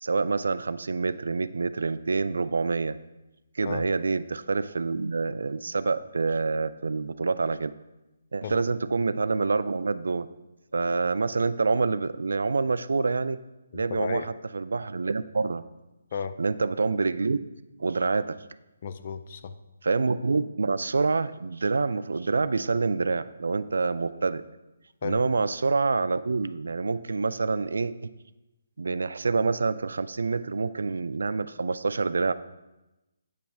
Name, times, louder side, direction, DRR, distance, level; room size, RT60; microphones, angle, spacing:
voice 1, 0.0-3.0 3.6-7.7 8.3-10.3 10.7-13.4 13.7-14.2 14.5-15.6 16.4-17.5 17.8-18.4 19.8-24.4 25.0-27.9 28.8-32.3, right 4 dB, 90° right, 14 dB, 0.3 m, -27 dB
voice 2, 13.7-14.3 16.1-16.3 18.8-19.5 25.0-25.2, left 6 dB, 35° left, 11 dB, 0.3 m, -34 dB
8.4 x 3.1 x 5.8 m, 1.0 s
hypercardioid pair, 170°, 0 cm